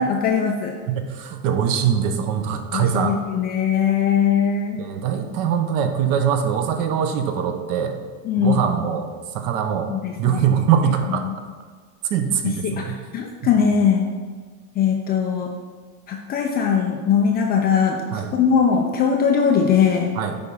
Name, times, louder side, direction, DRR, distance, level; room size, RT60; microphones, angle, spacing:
voice 1, 0.0-0.7 2.7-4.8 8.2-8.7 9.9-11.3 12.4-14.1 14.8-15.5 16.1-20.1, left 7 dB, 25° left, 2 dB, 0.4 m, -21 dB
voice 2, 0.9-3.2 4.8-8.0 8.4-9.1 9.3-9.9 10.2-11.3 12.1-13.0 18.1-18.3 20.2-20.4, right 8 dB, 50° right, 7 dB, 0.9 m, -22 dB
9.4 x 3.4 x 5.5 m, 1.5 s
supercardioid pair, 140°, 45 cm